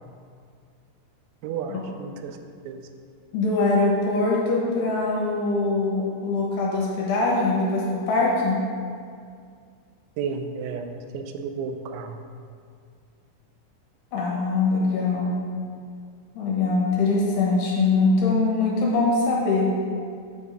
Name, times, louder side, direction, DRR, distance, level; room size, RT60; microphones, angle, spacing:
voice 1, 1.4-2.4 2.7-2.8 10.2-12.2, right 5 dB, 90° right, 6 dB, 2.9 m, -32 dB
voice 2, 3.3-8.6 14.1-15.4 16.3-19.7, left 3 dB, 75° left, -3 dB, 3.1 m, -22 dB
8.0 x 3.6 x 6.7 m, 2.2 s
omnidirectional pair, 5.1 m